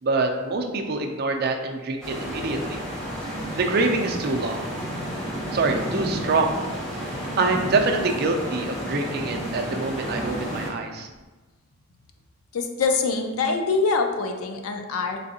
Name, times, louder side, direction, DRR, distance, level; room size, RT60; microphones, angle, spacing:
voice 1, 0.0-2.8 3.6-4.7 5.5-6.6 7.4-11.1, right 3 dB, 45° right, 3 dB, 0.4 m, -25 dB
sound 1, 2.0-10.7, equal, ahead, 0.8 m, -31 dB
voice 2, 12.5-15.2, left 4 dB, 80° left, 5 dB, 0.5 m, -24 dB
3.8 x 3.4 x 2.7 m, 1.2 s
head